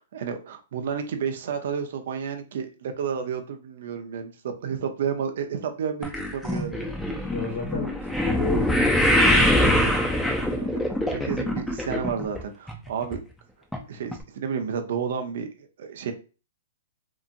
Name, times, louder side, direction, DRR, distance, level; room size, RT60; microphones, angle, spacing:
voice 1, 0.0-4.3 4.6-6.8 10.4-10.8 11.1-13.2 13.9-16.1, right 7 dB, 65° right, 6 dB, 0.6 m, -31 dB
sound 1, 6.0-12.4 12.7-13.2 13.7-13.8 14.1-14.2, left 1 dB, 5° left, 0.5 m, -23 dB
voice 2, 7.3-9.7, left 4 dB, 65° left, -2 dB, 1.2 m, -33 dB
2.8 x 2.5 x 2.5 m, 0.34 s
hypercardioid pair, 140°, 0 cm